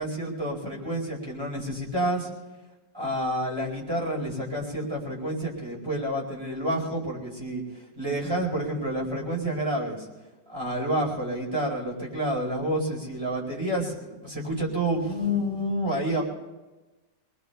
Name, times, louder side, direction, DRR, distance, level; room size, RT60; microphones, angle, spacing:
voice 1, 0.0-2.3 2.9-10.1 10.5-16.2, right 1 dB, 15° right, -2 dB, 4.5 m, -29 dB
28.0 x 21.5 x 2.3 m, 1.2 s
omnidirectional pair, 1.9 m